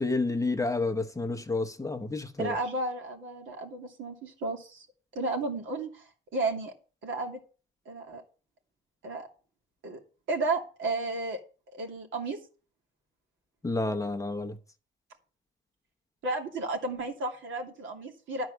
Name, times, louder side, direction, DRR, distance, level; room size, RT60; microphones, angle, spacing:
voice 1, 0.0-2.5 13.6-14.6, left 3 dB, 15° left, 1.0 m, -30 dB
voice 2, 2.4-4.9 5.1-6.0 6.3-6.7 7.0-7.4 7.9-8.2 9.0-9.3 9.8-10.0 10.3-11.4 11.7-12.4 16.2-18.5, right 2 dB, 75° right, 2.8 m, -33 dB
12.0 x 4.6 x 7.8 m
cardioid pair, 90°, 20 cm